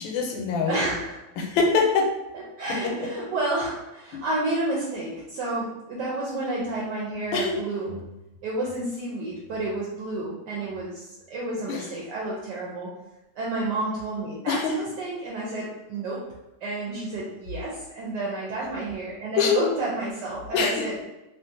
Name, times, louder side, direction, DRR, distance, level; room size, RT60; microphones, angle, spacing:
voice 1, 0.0-0.8 1.4-2.1 2.7-3.0 4.1-4.2 7.3-7.6 11.7-11.8 14.5-14.8 19.4-19.6 20.5-20.9, left 5 dB, 85° left, 1 dB, 1.4 m, -24 dB
voice 2, 0.7-1.2 2.3-8.0 8.4-12.9 13.4-16.2 16.6-20.9, right 2 dB, 75° right, -4 dB, 1.1 m, -30 dB
3.0 x 2.4 x 2.6 m, 0.97 s
omnidirectional pair, 2.1 m